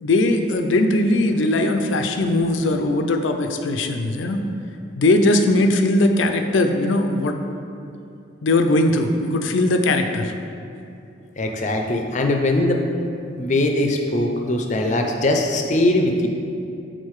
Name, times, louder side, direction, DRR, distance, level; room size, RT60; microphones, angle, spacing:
voice 1, 0.0-4.4 5.0-7.4 8.4-10.3, left 2 dB, 90° left, 6 dB, 0.5 m, -19 dB
voice 2, 11.4-12.8 13.4-16.3, left 1 dB, 40° left, 3 dB, 0.5 m, -21 dB
6.5 x 3.9 x 4.7 m, 2.7 s
head